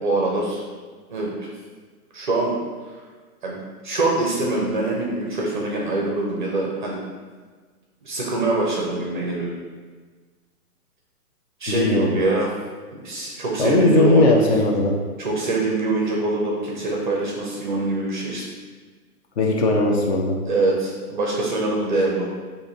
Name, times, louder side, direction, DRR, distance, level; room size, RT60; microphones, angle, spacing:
voice 1, 0.0-0.6 1.1-1.5 2.1-2.5 3.4-7.0 8.0-9.5 11.6-12.5 13.0-14.3 15.2-18.4 20.5-22.3, right 2 dB, 35° right, -2 dB, 0.4 m, -24 dB
voice 2, 11.7-12.1 13.6-14.9 19.4-20.4, left 2 dB, 45° left, 0 dB, 0.6 m, -18 dB
2.6 x 2.5 x 4.0 m, 1.5 s
hypercardioid pair, 140°, 46 cm